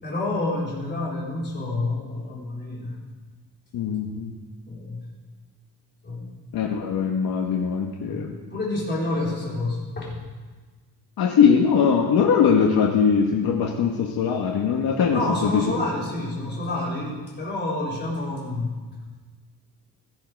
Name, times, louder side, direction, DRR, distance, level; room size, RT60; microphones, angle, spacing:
voice 1, 0.0-3.0 4.7-5.0 6.0-6.2 8.0-10.2 15.1-18.8, left 2 dB, 30° left, -4 dB, 4.0 m, -28 dB
voice 2, 3.7-4.3 6.5-8.4 11.2-15.6, left 6 dB, 80° left, 0 dB, 1.4 m, -21 dB
17.0 x 13.5 x 4.6 m, 1.3 s
wide cardioid pair, 175°, 36 cm